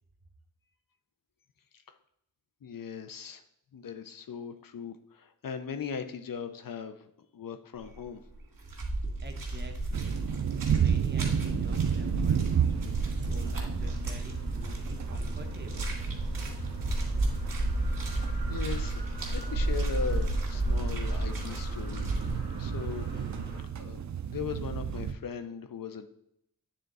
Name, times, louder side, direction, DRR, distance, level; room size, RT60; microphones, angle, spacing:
voice 1, 2.6-3.4 3.7-8.2 18.1-22.1 22.6-23.1 23.8-24.0 24.3-26.1, left 6 dB, 70° left, 9 dB, 0.7 m, -39 dB
sound 1, 7.8-8.1 8.3-22.4, right 2 dB, 70° right, 1.8 m, -33 dB
voice 2, 9.2-15.9, right 2 dB, 30° right, 3 dB, 1.0 m, -48 dB
sound 2, 9.9-25.1, right 8 dB, 55° right, 0.5 m, -33 dB
sound 3, 11.2-23.6, equal, 10° right, 2.2 m, -40 dB
9.2 x 3.8 x 3.9 m, 0.77 s
wide cardioid pair, 110°, 34 cm